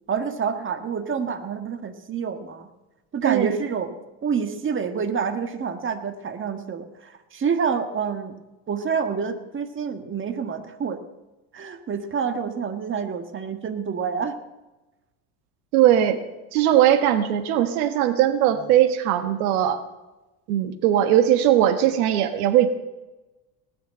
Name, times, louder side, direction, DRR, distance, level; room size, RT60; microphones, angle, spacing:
voice 1, 0.1-2.7 3.1-3.9 4.2-8.4 8.7-11.0 11.5-14.4, right 6 dB, 30° right, 9 dB, 1.6 m, -27 dB
voice 2, 15.7-16.2 16.5-19.8 20.5-22.7, right 11 dB, 90° right, 10 dB, 1.5 m, -19 dB
19.0 x 7.0 x 8.9 m, 1.1 s
supercardioid pair, 110°, 43 cm